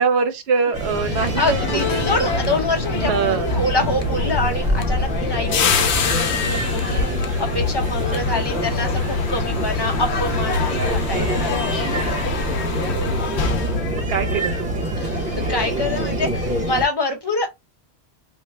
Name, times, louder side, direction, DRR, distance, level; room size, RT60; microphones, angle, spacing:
voice 1, 0.0-2.4 2.9-3.6 6.9-7.6 12.9-13.4 13.9-14.9, right 6 dB, 70° right, 0.9 m, -25 dB
sound 1, 0.7-16.9, equal, 40° right, 1.1 m, -25 dB
sound 2, 0.9-15.0 15.2-15.5, left 5 dB, 80° left, 0.9 m, -26 dB
voice 2, 1.1-11.9 15.0-17.5, left 2 dB, 25° left, 0.7 m, -26 dB
sound 3, 1.2-6.6 6.9-7.3 8.5-8.6, left 5 dB, 50° left, 0.3 m, -35 dB
3.0 x 2.5 x 3.2 m
omnidirectional pair, 1.1 m